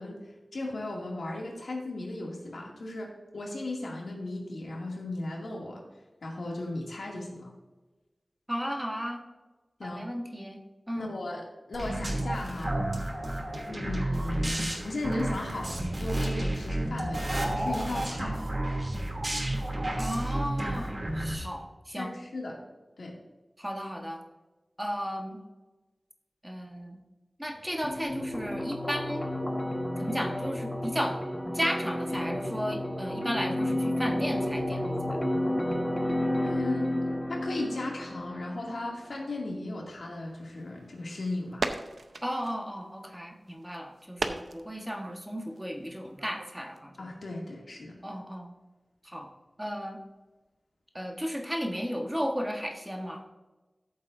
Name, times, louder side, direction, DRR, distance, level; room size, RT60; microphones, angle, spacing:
voice 1, 0.0-5.8 6.2-7.5 9.8-10.1 10.9-12.8 13.7-18.4 22.0-22.6 23.0-23.2 36.4-36.9 37.3-41.7 47.0-48.0, left 2 dB, 90° left, -1 dB, 2.3 m, -36 dB
voice 2, 8.5-9.2 9.8-10.6 10.9-11.2 20.0-22.1 23.6-24.2 24.8-25.4 26.4-27.0 27.4-29.3 30.0-31.2 31.5-34.8 42.2-46.9 48.0-48.5 49.1-49.3 49.6-50.0 50.9-53.2, equal, 5° right, 1 dB, 1.3 m, -34 dB
sound 1, 11.7-21.3, right 1 dB, 40° right, 2.7 m, -31 dB
sound 2, 27.8-38.8, left 1 dB, 20° left, 1.4 m, -31 dB
sound 3, 40.1-46.8, right 3 dB, 80° right, 0.7 m, -39 dB
14.0 x 7.6 x 2.6 m, 1.2 s
wide cardioid pair, 70°, 0 cm